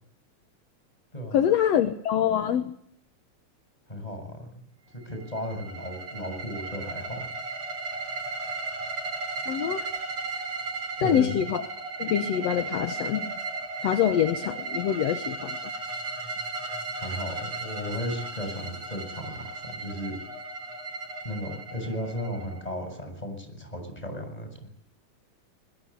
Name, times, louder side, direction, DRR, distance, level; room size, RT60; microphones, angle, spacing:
voice 1, 1.3-2.7 9.5-9.9 11.0-11.6 12.0-13.3 13.8-15.6, left 10 dB, 65° left, 8 dB, 2.2 m, -25 dB
voice 2, 3.9-4.7 5.0-7.3 11.0-11.4 17.0-20.2 21.2-24.7, equal, 10° left, 6 dB, 7.1 m, -35 dB
sound 1, 5.1-22.9, right 3 dB, 60° right, 4.9 m, -35 dB
22.0 x 21.5 x 8.5 m, 0.69 s
omnidirectional pair, 3.4 m